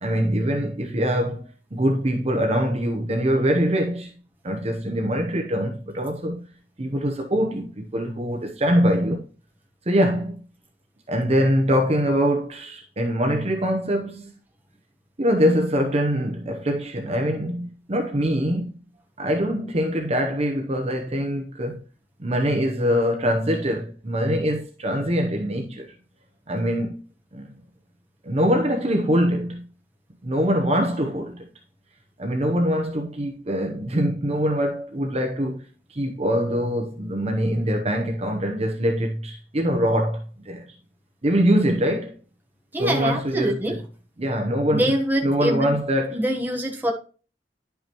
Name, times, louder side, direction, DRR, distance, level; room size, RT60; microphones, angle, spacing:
voice 1, 0.0-4.1 4.4-6.5 6.8-9.2 9.9-10.4 11.1-14.4 15.2-18.7 19.2-21.8 22.2-25.9 26.5-27.0 27.3-27.5 28.2-29.7 30.2-31.5 32.2-35.6 35.9-40.7 41.2-42.2 42.8-43.8 44.2-44.9 45.2-46.2, equal, 35° right, 0.8 m, -23 dB
voice 2, 42.7-43.8 44.7-45.8 46.1-46.9, right 1 dB, 10° right, 1.1 m, -24 dB
10.5 x 5.6 x 3.0 m
head